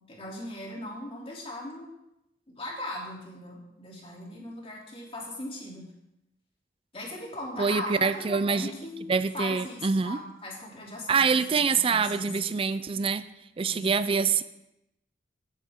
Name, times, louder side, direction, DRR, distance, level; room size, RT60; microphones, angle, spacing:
voice 1, 0.1-1.9 2.5-5.8 6.9-9.0 9.3-12.4 13.6-14.1, left 1 dB, 35° left, -3 dB, 3.0 m, -39 dB
voice 2, 7.6-8.7 9.1-10.2 11.1-13.3 13.6-14.4, right 5 dB, 30° right, 13 dB, 0.4 m, -25 dB
16.5 x 7.5 x 3.6 m, 0.87 s
head